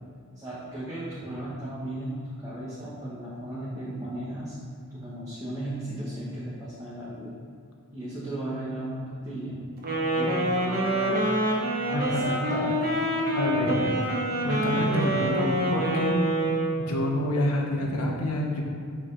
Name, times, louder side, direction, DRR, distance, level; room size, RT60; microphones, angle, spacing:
voice 1, 0.3-4.6 4.9-7.4 7.9-11.2 11.9-12.8, right 1 dB, 15° right, -9 dB, 1.5 m, -36 dB
Wind instrument woodwind instrument, 9.8-16.9, right 1 dB, 45° right, 1.4 m, -26 dB
voice 2, 10.7-11.2 11.9-12.2 12.5-12.6 13.3-13.9 14.4-16.1 16.8-18.6, left 1 dB, 85° left, 0 dB, 1.4 m, -28 dB
7.7 x 6.3 x 4.1 m, 2.4 s
head